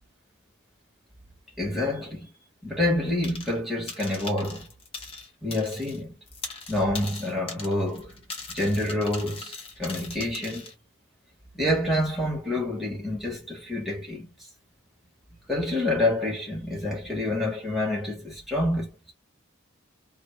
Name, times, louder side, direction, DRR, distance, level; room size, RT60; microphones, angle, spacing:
voice 1, 1.6-2.3 2.6-4.7 5.4-6.2 6.7-8.1 8.5-10.7 11.5-14.3 15.5-19.1, left 1 dB, ahead, 1.3 m, -27 dB
sound 1, 3.2-3.6 3.9-6.0 6.3-10.7, left 4 dB, 25° left, 0.7 m, -40 dB
2.6 x 2.4 x 3.2 m
head